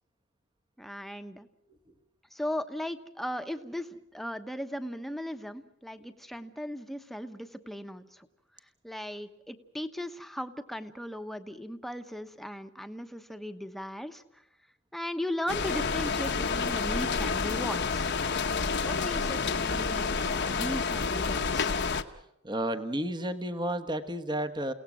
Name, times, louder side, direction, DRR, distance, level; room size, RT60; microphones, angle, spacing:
voice 1, 0.8-1.5 2.3-8.3 8.8-14.4 14.9-18.1 18.7-21.7, equal, ahead, 8 dB, 1.0 m, -37 dB
sound 1, 15.5-22.0, left 5 dB, 55° left, 1.1 m, -29 dB
voice 2, 22.4-24.7, right 1 dB, 20° right, 7 dB, 1.1 m, -32 dB
30.0 x 17.5 x 6.2 m, 0.83 s
head